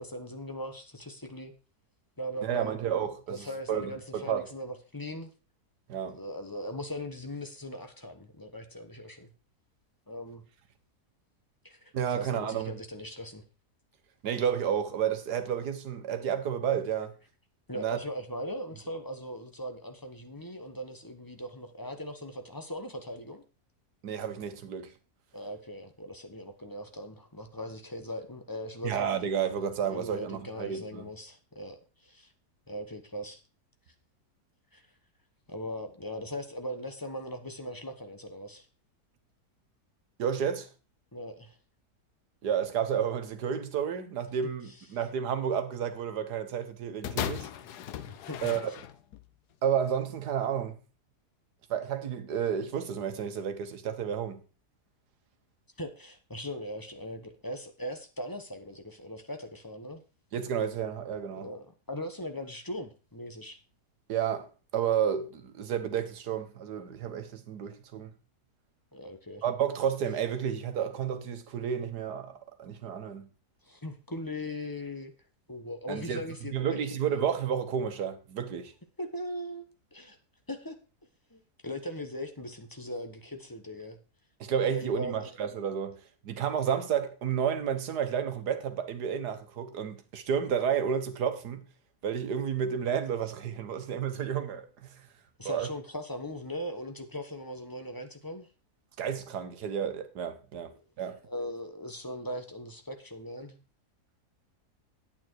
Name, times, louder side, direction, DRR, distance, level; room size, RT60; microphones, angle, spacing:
voice 1, 0.0-1.5 2.2-2.8 3.3-5.3 6.1-9.3 10.1-10.4 11.6-13.4 17.7-23.4 25.3-29.1 29.9-32.3 32.7-33.4 34.7-34.9 35.5-38.7 41.1-41.6 48.0-48.6 55.8-60.0 61.4-63.6 68.9-69.4 73.6-75.1 75.5-76.8 79.0-79.6 79.9-80.2 80.5-80.8 81.3-84.0 84.7-85.3 95.4-98.5 100.6-100.8 101.2-103.6, equal, 15° left, 0.9 m, -39 dB
voice 2, 2.4-4.4 5.9-6.2 11.9-12.7 14.2-17.1 17.7-18.0 24.0-24.9 28.8-31.1 40.2-40.7 42.4-47.5 48.4-48.7 49.6-50.8 51.7-54.4 60.3-61.5 64.1-68.1 69.4-73.3 75.9-76.2 76.5-78.7 84.4-91.7 92.0-95.1 95.4-95.7 99.0-101.2, right 8 dB, 85° right, 1.7 m, -31 dB
sound 1, 47.0-49.3 50.1-50.2, left 10 dB, 85° left, 1.3 m, -37 dB
9.1 x 8.7 x 4.6 m
omnidirectional pair, 1.7 m